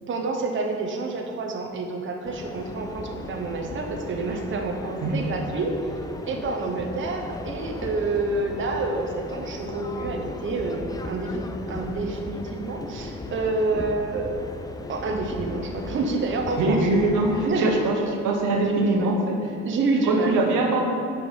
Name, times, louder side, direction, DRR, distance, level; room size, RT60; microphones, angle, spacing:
voice 1, 0.1-5.8 6.2-14.3 14.9-16.8 17.4-17.7 18.6-19.2 19.6-20.4, right 3 dB, 40° right, 2 dB, 0.7 m, -28 dB
sound 1, 2.2-17.5, left 2 dB, 15° left, 0.4 m, -36 dB
voice 2, 16.6-19.5 20.0-20.8, right 2 dB, 85° right, 1 dB, 1.0 m, -22 dB
5.4 x 4.7 x 4.7 m, 2.7 s
cardioid pair, 90°, 30 cm